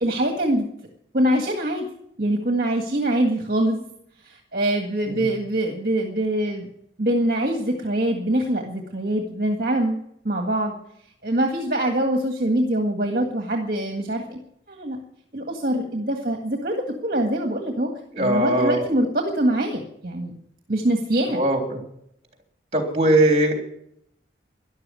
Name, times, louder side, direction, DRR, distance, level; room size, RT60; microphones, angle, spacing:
voice 1, 0.0-0.7 1.1-1.9 2.2-3.8 4.2-6.7 7.0-10.8 11.2-14.4 14.7-15.0 15.3-17.9 18.2-20.3 20.7-21.4, right 1 dB, 50° right, 3 dB, 1.8 m, -24 dB
voice 2, 18.1-18.8 21.3-21.8 22.7-23.5, right 1 dB, 35° right, 3 dB, 3.4 m, -20 dB
13.0 x 11.5 x 9.7 m, 0.74 s
head